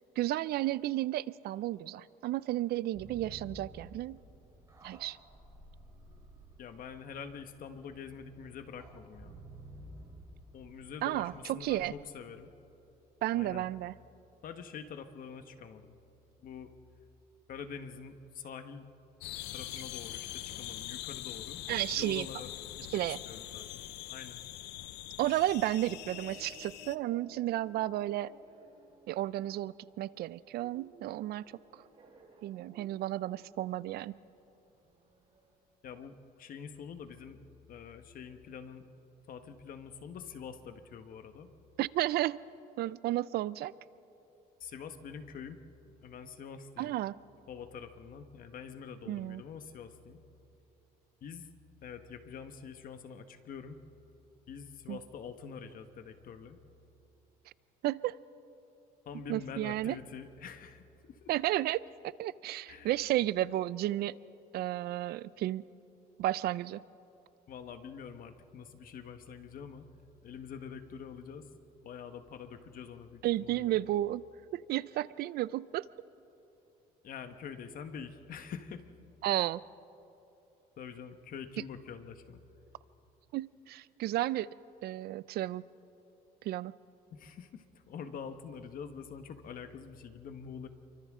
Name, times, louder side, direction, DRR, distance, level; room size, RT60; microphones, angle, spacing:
voice 1, 0.2-4.2 4.8-5.2 11.0-11.9 13.2-13.9 21.7-22.3 22.9-23.2 25.2-28.3 29.1-31.8 32.4-34.2 41.8-42.4 42.8-43.7 46.8-47.2 49.1-49.4 54.9-55.0 57.8-58.2 59.3-60.0 61.3-61.8 62.2-64.2 64.5-65.6 66.2-66.8 73.2-74.2 74.5-75.9 79.2-79.6 83.3-84.5 84.8-85.6 86.4-86.7, right 15 dB, 70° right, 19 dB, 0.5 m, -32 dB
sound 1, 2.9-11.9, right 1 dB, 20° right, 3.8 m, -53 dB
voice 2, 6.6-9.3 10.5-12.5 13.3-13.7 14.4-15.9 16.4-16.7 17.5-18.9 19.5-21.6 22.0-22.5 22.7-23.8 24.1-24.4 35.8-37.4 37.7-38.9 39.3-41.5 44.6-45.6 46.0-46.9 47.5-50.2 51.2-51.5 51.8-53.8 54.5-56.6 59.0-61.3 62.7-62.9 67.5-69.8 70.2-71.5 71.8-73.8 77.0-78.8 80.8-82.4 87.1-90.7, left 6 dB, 55° left, 8 dB, 1.3 m, -46 dB
sound 2, 19.2-27.0, left 15 dB, 90° left, 0.7 m, -43 dB
sound 3, 25.5-35.5, right 3 dB, 35° right, 4.2 m, -58 dB
29.0 x 24.0 x 3.7 m, 2.9 s
cardioid pair, 110°, 17 cm